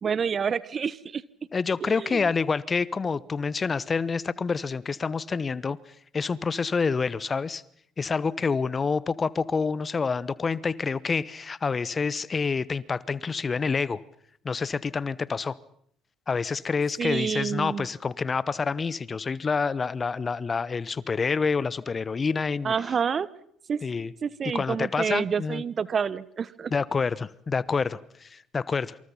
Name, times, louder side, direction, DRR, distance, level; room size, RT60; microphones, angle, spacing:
voice 1, 0.0-1.2 1.8-2.3 17.0-17.9 22.6-23.3 23.7-23.8 24.2-26.7, right 6 dB, 40° right, 19 dB, 1.1 m, -28 dB
voice 2, 1.5-5.8 6.1-7.6 8.0-14.0 14.4-15.6 16.3-22.7 23.8-24.1 24.5-25.6 26.7-29.0, left 5 dB, 35° left, 20 dB, 1.0 m, -27 dB
27.5 x 26.5 x 5.8 m, 0.67 s
hypercardioid pair, 50°, 0 cm